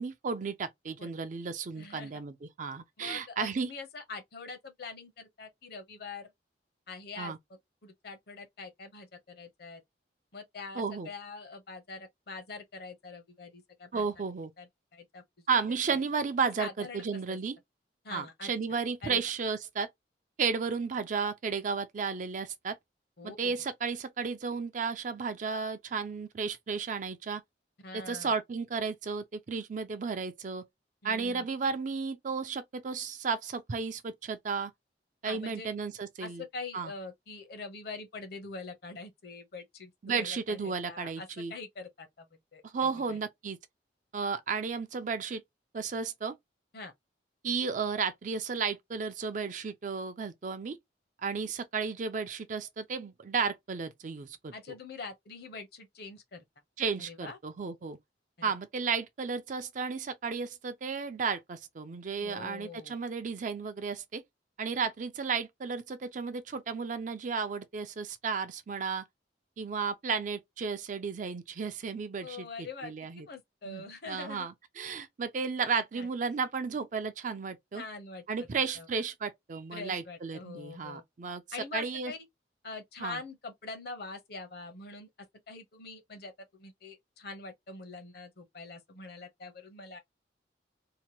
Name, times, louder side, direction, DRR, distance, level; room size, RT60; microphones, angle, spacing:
voice 1, 0.0-3.7 7.2-7.4 10.8-11.1 13.9-14.5 15.5-17.6 18.1-19.9 20.4-22.8 23.2-27.4 27.9-30.6 31.0-34.7 35.2-36.4 36.7-36.9 40.0-41.5 42.6-43.6 44.1-45.4 45.7-46.3 47.4-50.8 51.2-54.5 56.8-58.0 58.4-64.2 64.6-69.0 69.6-73.3 73.6-77.8 78.3-81.4 81.7-82.1 83.0-83.2, right 5 dB, 45° right, 0.4 m, -33 dB
voice 2, 1.8-2.1 3.0-6.3 6.9-9.8 10.3-14.1 14.6-15.2 15.9-16.0 16.6-17.4 18.0-18.5 19.0-19.2 23.2-23.6 27.8-28.3 31.0-31.5 35.2-35.7 36.2-43.2 46.7-46.9 54.5-56.4 57.0-57.4 58.4-58.5 62.2-62.9 72.2-74.5 75.9-76.1 77.7-78.2 78.8-78.9 79.7-81.0 81.5-82.2 82.6-90.0, left 4 dB, 60° left, 0.8 m, -44 dB
2.8 x 2.2 x 2.8 m
head